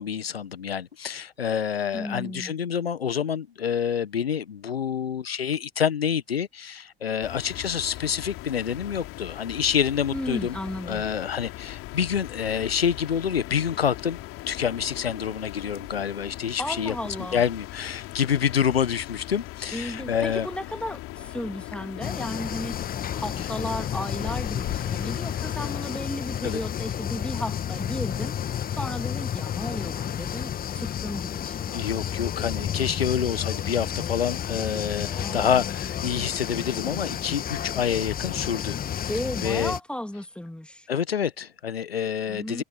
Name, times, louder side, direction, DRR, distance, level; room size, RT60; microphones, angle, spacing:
voice 1, 0.0-10.6 10.9-14.2 14.5-16.9 17.3-20.5 26.4-26.6 31.7-38.8 39.4-39.7 40.9-42.6, left 8 dB, 80° left, 1.3 m, -27 dB
voice 2, 1.9-2.5 10.1-11.1 16.6-17.4 19.7-31.8 35.1-35.6 39.1-40.9 42.3-42.6, left 1 dB, 5° left, 2.6 m, -34 dB
sound 1, 7.2-26.0, left 17 dB, 50° left, 3.1 m, -39 dB
sound 2, 22.0-39.8, left 9 dB, 30° left, 1.4 m, -31 dB
figure-of-eight pair, 65°, 30 cm